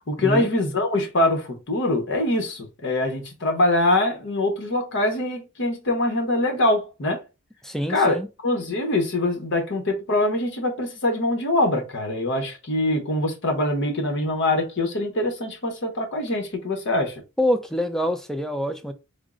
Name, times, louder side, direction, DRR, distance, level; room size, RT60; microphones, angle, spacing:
voice 1, 0.1-7.2 7.9-17.2, left 1 dB, 55° left, 1.0 m, -23 dB
voice 2, 7.6-8.3 17.4-18.9, equal, ahead, 0.3 m, -25 dB
3.6 x 2.0 x 3.6 m
head